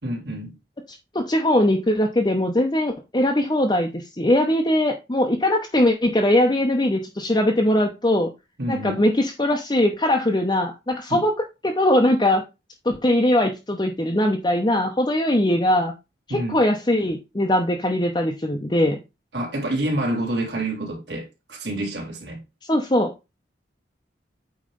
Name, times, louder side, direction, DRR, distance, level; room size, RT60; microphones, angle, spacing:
voice 1, 0.0-0.6 8.6-9.0 11.1-11.3 16.3-16.7 19.3-22.4, right 1 dB, 70° right, 3.0 m, -28 dB
voice 2, 0.9-8.3 8.7-11.3 11.6-12.4 12.8-15.9 16.3-19.0 22.7-23.3, left 1 dB, 25° left, 0.7 m, -21 dB
8.6 x 3.2 x 5.3 m
head